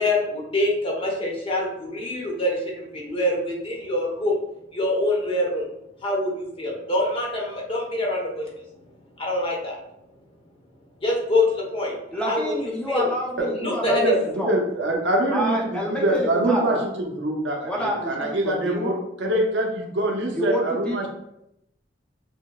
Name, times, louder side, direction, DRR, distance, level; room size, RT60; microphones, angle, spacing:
voice 1, 0.0-4.4 4.7-5.6 6.0-8.5 9.2-9.8 11.0-12.0 12.2-12.5 12.9-13.1 13.6-14.1, left 1 dB, 30° left, -2 dB, 0.9 m, -25 dB
voice 2, 12.1-14.5 15.3-16.9 17.6-18.9 20.3-21.1, equal, 5° left, -2 dB, 0.7 m, -28 dB
voice 3, 13.4-21.1, right 1 dB, 80° right, 0 dB, 0.8 m, -24 dB
6.4 x 2.2 x 2.3 m, 0.82 s
head